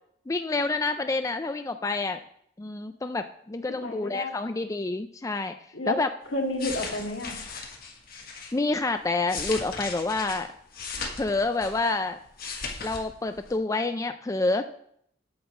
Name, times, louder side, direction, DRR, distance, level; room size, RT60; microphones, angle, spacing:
voice 1, 0.3-2.2 2.6-5.6 5.9-6.1 8.5-10.5 11.2-12.2 12.8-14.6, left 3 dB, 15° left, 8 dB, 0.4 m, -28 dB
voice 2, 3.8-4.5 5.7-6.0 6.3-7.4, left 2 dB, 80° left, 0 dB, 2.2 m, -31 dB
sound 1, 6.3-8.5 9.1-12.0 12.2-13.0 13.3-13.5, left 4 dB, 50° left, 1.6 m, -37 dB
8.7 x 5.5 x 7.0 m, 0.67 s
head